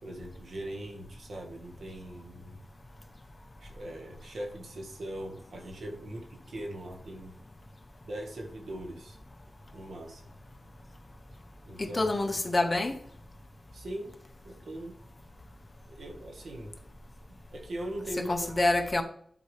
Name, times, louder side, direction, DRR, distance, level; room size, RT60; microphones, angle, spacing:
voice 1, 0.0-2.6 3.6-7.3 8.0-9.2 9.7-10.2 11.6-12.2 13.7-14.1 14.4-15.0 15.9-16.8 17.5-18.5, right 1 dB, 75° right, 1.6 m, -40 dB
voice 2, 11.8-12.9 18.3-19.0, left 2 dB, 30° left, 0.8 m, -27 dB
11.0 x 4.6 x 3.3 m
wide cardioid pair, 95°, 0 cm